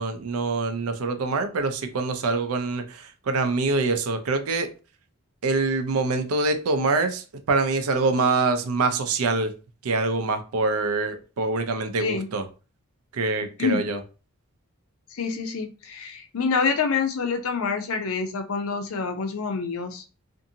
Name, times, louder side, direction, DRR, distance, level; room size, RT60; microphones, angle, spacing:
voice 1, 0.0-4.7 5.4-9.5 9.8-12.4 13.1-14.0, right 3 dB, 85° right, 0.5 m, -25 dB
voice 2, 15.1-20.0, left 5 dB, 80° left, 0.5 m, -27 dB
2.6 x 2.5 x 2.6 m
head